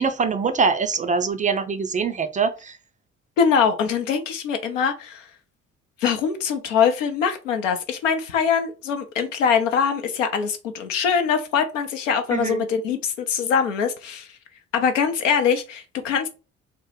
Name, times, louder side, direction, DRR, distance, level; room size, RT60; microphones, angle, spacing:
voice 1, 0.0-2.8 12.3-12.6, right 5 dB, 20° right, 0.4 m, -23 dB
voice 2, 3.4-5.3 6.0-14.3 14.7-16.3, left 6 dB, 80° left, 0.6 m, -23 dB
3.6 x 2.0 x 3.1 m
figure-of-eight pair, 45°, 38 cm